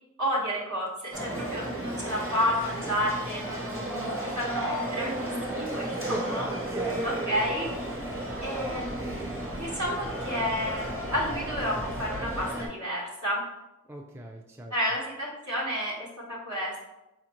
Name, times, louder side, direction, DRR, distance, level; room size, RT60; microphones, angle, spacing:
voice 1, 0.2-6.5 7.0-7.7 8.4-9.2 9.5-13.4 14.7-16.9, equal, 65° right, -5 dB, 1.0 m, -31 dB
sound 1, 1.1-12.7, right 1 dB, 45° right, 1.0 m, -33 dB
voice 2, 5.9-7.1 13.9-14.7, equal, 10° right, 1 dB, 0.3 m, -38 dB
4.1 x 2.5 x 2.9 m, 0.94 s
wide cardioid pair, 45°, 31 cm